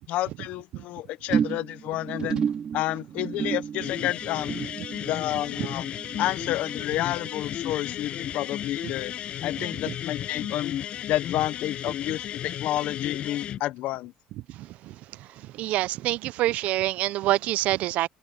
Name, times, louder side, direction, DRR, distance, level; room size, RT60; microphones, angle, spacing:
voice 1, 0.1-2.5 2.7-4.6 5.1-5.9 6.2-9.1 9.4-10.8 11.1-14.1, left 15 dB, 65° left, 0.9 m, -30 dB
sound 1, 1.3-7.9 8.2-8.6 8.9-9.0, right 7 dB, 35° right, 2.6 m, -32 dB
sound 2, 3.8-13.6, left 11 dB, 50° left, 6.2 m, -34 dB
voice 2, 15.6-18.1, right 16 dB, 65° right, 0.5 m, -25 dB
cardioid pair, 145°, 3 cm